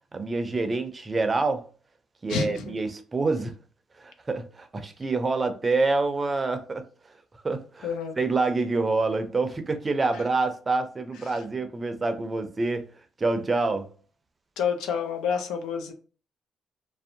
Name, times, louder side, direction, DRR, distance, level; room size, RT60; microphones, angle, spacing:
voice 1, 0.1-1.6 2.2-3.5 4.0-6.8 7.4-7.9 8.2-12.9 13.2-13.9, right 3 dB, 30° right, 0.5 m, -26 dB
voice 2, 2.3-2.7 7.8-8.2 10.1-10.2 11.3-11.4 14.6-15.9, left 6 dB, 90° left, 0.4 m, -29 dB
2.5 x 2.0 x 2.6 m
cardioid pair, 90°, 0 cm